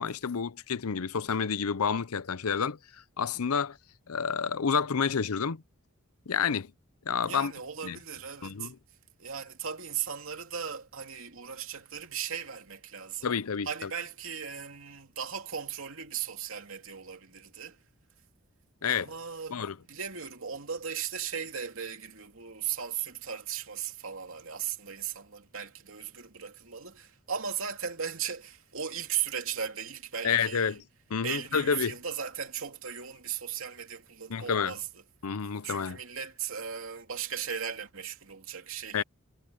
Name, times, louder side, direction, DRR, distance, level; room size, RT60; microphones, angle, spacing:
voice 1, 0.0-2.8 3.2-3.8 4.1-5.6 6.3-6.7 7.1-7.5 7.8-8.0 8.4-8.7 13.2-13.9 18.8-19.1 19.5-19.8 30.2-30.8 31.1-31.9 34.3-34.7 35.2-36.0 38.9-39.0, left 6 dB, 90° left, 0.7 m, -29 dB
voice 2, 7.2-8.7 9.2-13.3 13.6-17.8 18.8-30.8 31.2-34.9 35.6-39.0, right 8 dB, 65° right, 2.9 m, -37 dB
head